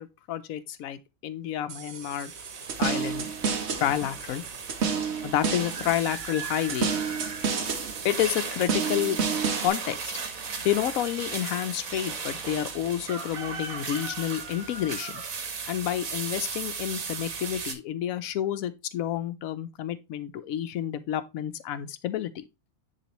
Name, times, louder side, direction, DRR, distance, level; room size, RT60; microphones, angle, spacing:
voice 1, 0.0-2.3 2.8-3.3 3.8-4.4 5.2-6.9 8.0-9.2 9.6-10.2 10.6-15.2 15.7-22.4, left 11 dB, 85° left, 1.1 m, -29 dB
sound 1, 1.7-9.7, right 6 dB, 55° right, 1.1 m, -31 dB
sound 2, 2.0-17.7, right 5 dB, 80° right, 1.6 m, -36 dB
10.0 x 3.4 x 3.0 m
omnidirectional pair, 1.4 m